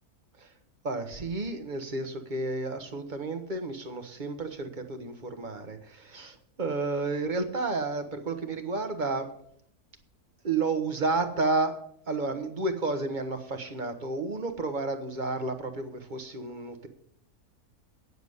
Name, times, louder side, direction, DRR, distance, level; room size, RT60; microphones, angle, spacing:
voice 1, 0.8-9.3 10.4-11.7 12.1-16.9, right 3 dB, 35° right, 6 dB, 1.3 m, -31 dB
9.5 x 7.1 x 8.1 m, 0.69 s
omnidirectional pair, 1.6 m